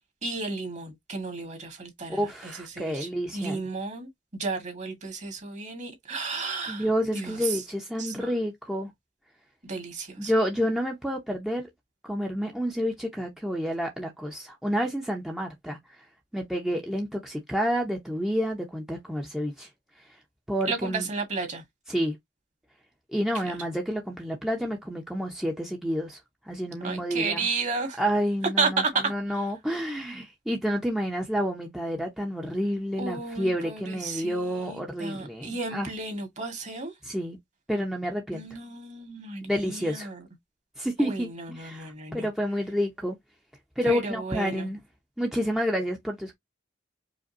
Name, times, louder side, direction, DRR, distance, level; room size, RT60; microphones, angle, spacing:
voice 1, 0.2-6.9 7.1-7.6 8.0-8.3 9.6-10.3 20.7-21.6 23.4-23.5 26.8-28.0 28.6-29.5 33.0-36.9 38.3-40.2 41.0-42.3 43.8-44.7, right 4 dB, 40° right, 1.6 m, -33 dB
voice 2, 2.1-3.6 6.7-8.9 10.2-11.7 12.0-15.8 16.3-19.7 20.5-21.1 21.9-22.2 23.1-26.2 26.5-27.5 28.0-35.9 37.0-37.4 37.7-38.4 39.4-40.1 40.8-43.2 43.8-44.8 45.2-46.4, equal, ahead, 0.7 m, -29 dB
5.0 x 2.2 x 2.6 m
head